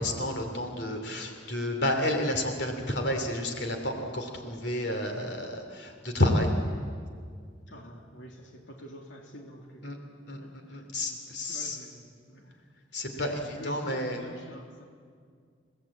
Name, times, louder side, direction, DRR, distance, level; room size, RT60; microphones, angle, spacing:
voice 1, 0.0-6.5 9.8-10.0 10.3-10.4 10.7-11.8 12.9-14.2, left 1 dB, 65° left, 4 dB, 3.1 m, -30 dB
voice 2, 7.7-12.5 13.1-14.9, equal, 90° left, 1 dB, 2.9 m, -48 dB
30.0 x 18.0 x 8.6 m, 2.1 s
head